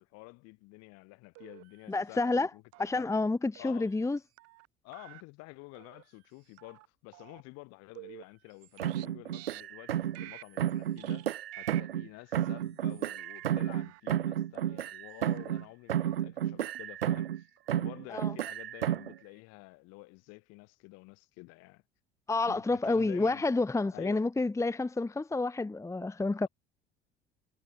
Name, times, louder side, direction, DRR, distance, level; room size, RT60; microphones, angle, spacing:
voice 1, 0.0-2.6 2.9-3.2 3.6-3.9 4.8-17.5 17.7-21.8 22.4-23.4 23.9-24.3, left 25 dB, 60° left, 5.4 m, -50 dB
sound 1, 1.4-1.9 2.2-2.5 2.7-3.0 3.6-4.1 4.4-4.7 4.9-5.2 5.8-6.0 6.5-6.9 7.1-7.4 8.0-9.1 9.3-9.6 10.1-10.7 11.0-11.3 11.5-11.8 12.3-13.5 13.7-14.0 14.5-15.1 15.4-15.7 15.9-16.2 16.7-16.8 17.6-17.8 18.1-18.4 18.9-19.4, right 23 dB, 55° right, 2.3 m, -52 dB
voice 2, 1.9-2.5 2.8-4.2 18.1-18.3 22.3-26.5, left 3 dB, 10° left, 1.0 m, -29 dB
sound 2, 8.8-10.3 10.6-12.1 12.3-15.6 15.9-17.4 17.7-19.2, right 11 dB, 80° right, 0.7 m, -32 dB
figure-of-eight pair, 60°, 29 cm